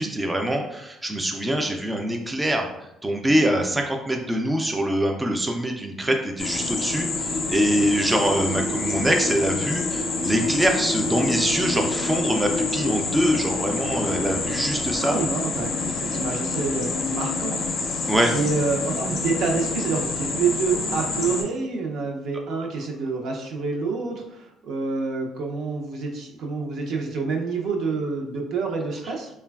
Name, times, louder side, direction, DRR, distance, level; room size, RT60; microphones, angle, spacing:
voice 1, 0.0-2.7 3.0-15.2 18.1-18.3, right 1 dB, 10° right, 3 dB, 0.3 m, -24 dB
sound 1, 6.4-21.4, left 3 dB, 60° left, 0.5 m, -27 dB
voice 2, 15.0-18.0 18.3-29.3, right 4 dB, 70° right, 1 dB, 0.5 m, -27 dB
3.1 x 2.2 x 2.3 m, 0.85 s
cardioid pair, 105°, 0 cm